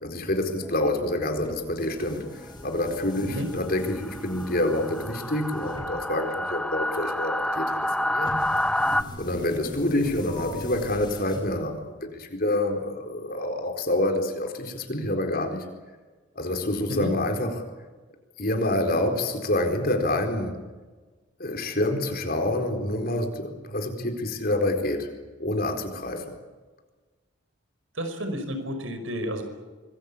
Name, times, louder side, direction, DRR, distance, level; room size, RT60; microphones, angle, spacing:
voice 1, 0.0-8.4 9.2-15.6 16.4-17.6 18.4-20.6 21.4-25.1 25.4-26.3, left 1 dB, 50° left, 5 dB, 4.3 m, -27 dB
sound 1, 0.6-9.0, left 1 dB, 5° left, 0.9 m, -30 dB
sound 2, 1.4-12.0, left 1 dB, 25° left, 6.0 m, -42 dB
voice 2, 28.0-29.4, equal, 80° right, 7 dB, 5.5 m, -31 dB
25.5 x 21.5 x 8.6 m, 1.3 s
head